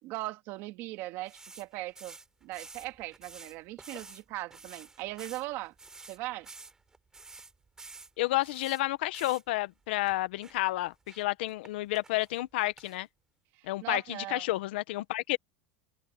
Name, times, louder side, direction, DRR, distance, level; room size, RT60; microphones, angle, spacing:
voice 1, 0.0-2.2 2.4-5.7 6.1-6.5 13.6-14.5, right 18 dB, 45° right, 1.9 m, -39 dB
sound 1, 1.3-4.2 4.5-8.8 9.1-9.5 10.1-10.2 10.4-11.7 11.9-13.0, right 4 dB, 10° right, 5.1 m, -50 dB
voice 2, 8.2-13.1 13.6-15.4, left 18 dB, 75° left, 1.2 m, -31 dB
open air
supercardioid pair, 160°, 6 cm